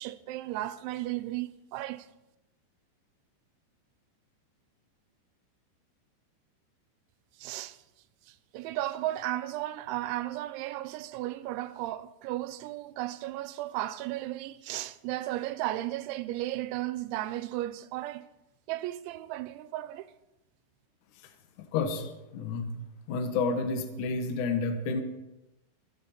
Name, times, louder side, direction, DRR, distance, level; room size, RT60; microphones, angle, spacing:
voice 1, 0.0-2.1 7.4-7.8 8.3-18.2 18.7-20.1, right 15 dB, 85° right, 2.9 m, -35 dB
voice 2, 21.6-22.7 23.1-25.0, left 4 dB, 75° left, 1.9 m, -30 dB
24.5 x 8.6 x 4.3 m
omnidirectional pair, 5.5 m